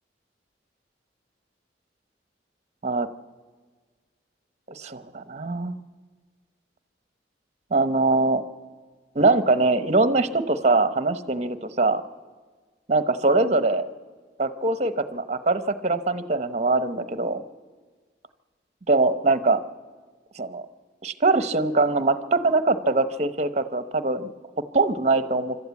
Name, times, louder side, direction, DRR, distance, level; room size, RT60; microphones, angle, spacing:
voice 1, 4.7-5.7 7.7-8.4 9.1-12.0 12.9-13.8 14.4-17.4 18.9-19.6 20.4-20.6 21.0-24.3 24.7-25.6, right 3 dB, 40° right, 12 dB, 0.9 m, -22 dB
26.0 x 12.5 x 8.3 m, 1.5 s
head